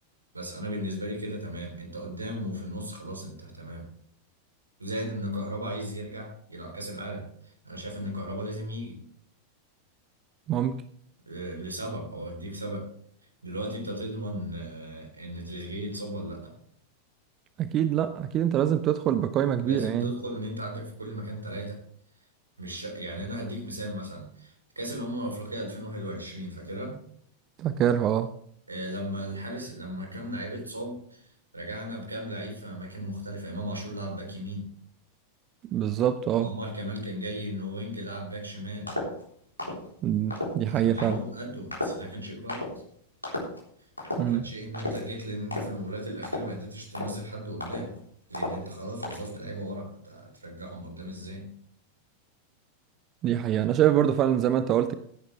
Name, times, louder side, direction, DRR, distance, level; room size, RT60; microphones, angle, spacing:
voice 1, 0.3-3.9 4.8-7.3 7.6-9.0 11.3-12.9 13.4-16.5 19.7-21.8 22.6-27.0 28.7-34.7 36.4-38.9 40.7-42.7 44.3-47.9 48.3-51.5, equal, 80° right, 3.6 m, -36 dB
voice 2, 17.6-20.1 27.6-28.3 35.7-36.5 40.0-41.2 44.2-44.5 53.2-54.9, right 10 dB, 35° right, 0.6 m, -24 dB
sound 1, 38.9-39.2 39.6-39.9 40.3-40.6 41.0-41.2 41.7-42.1 42.5-42.7 43.2-43.6 44.0-44.3 44.7-45.1 45.5-45.8 46.2-46.6 46.9-47.2 47.6-48.0 48.3-48.7 49.0-49.3, left 1 dB, 85° left, 3.7 m, -33 dB
16.5 x 10.5 x 3.4 m
figure-of-eight pair, 90°, 0 cm